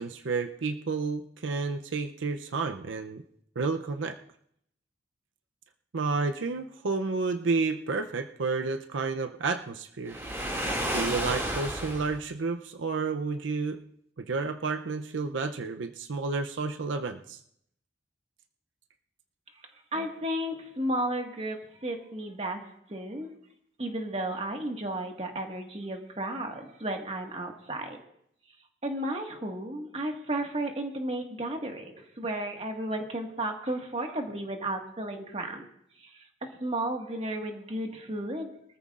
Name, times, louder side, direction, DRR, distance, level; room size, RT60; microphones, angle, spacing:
voice 1, 0.0-3.2 3.6-4.2 5.9-10.2 10.9-13.8 14.2-17.4, right 4 dB, 85° right, 7 dB, 0.6 m, -31 dB
Waves surf, 10.1-12.2, right 1 dB, 15° right, 2.2 m, -31 dB
voice 2, 19.9-23.3 23.8-28.0 28.8-35.7 36.0-38.5, right 1 dB, 35° right, 2 dB, 1.7 m, -33 dB
23.5 x 14.0 x 2.5 m, 0.71 s
head